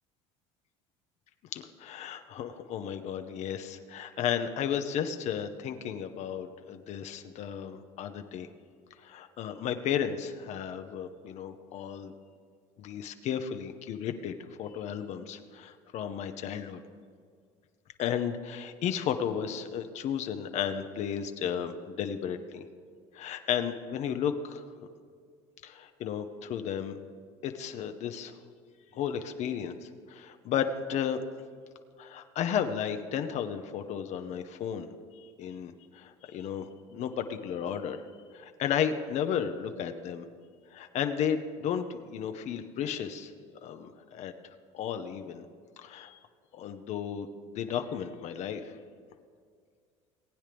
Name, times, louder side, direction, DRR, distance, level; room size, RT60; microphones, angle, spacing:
voice 1, 1.5-8.5 9.0-12.1 12.8-16.8 18.0-22.6 23.1-24.6 25.6-27.0 27.4-28.3 28.9-31.2 32.0-38.0 38.3-40.2 40.7-43.3 43.6-44.3 44.7-45.5 45.8-46.2 46.5-48.8, left 8 dB, 55° left, 7 dB, 0.7 m, -34 dB
19.5 x 8.8 x 3.4 m, 2.1 s
supercardioid pair, 90°, 14 cm